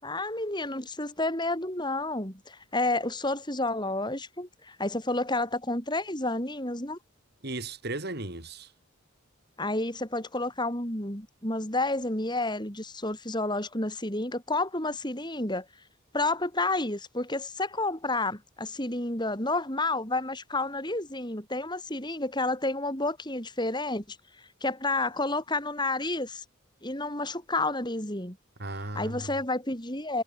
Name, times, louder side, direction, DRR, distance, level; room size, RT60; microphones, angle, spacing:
voice 1, 0.0-7.0 9.6-15.6 16.1-24.2 24.6-26.4 26.8-28.4 28.9-30.2, left 2 dB, 20° left, 6.8 m, -30 dB
voice 2, 7.4-8.7 28.6-29.4, right 2 dB, 50° right, 3.8 m, -36 dB
head